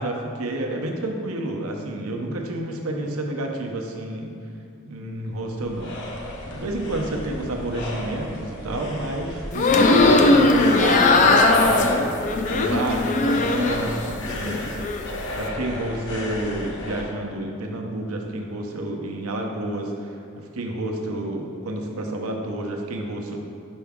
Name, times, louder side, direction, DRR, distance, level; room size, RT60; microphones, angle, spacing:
voice 1, 0.0-4.3 4.8-5.9 6.5-11.9 12.5-14.8 15.3-23.4, right 1 dB, 80° right, 2 dB, 0.7 m, -29 dB
sound 1, 5.2-17.1, left 1 dB, 55° left, 0.8 m, -32 dB
sound 2, 9.5-13.9 14.3-15.0, left 2 dB, 35° left, 0.3 m, -19 dB
5.7 x 5.3 x 3.5 m, 2.4 s
head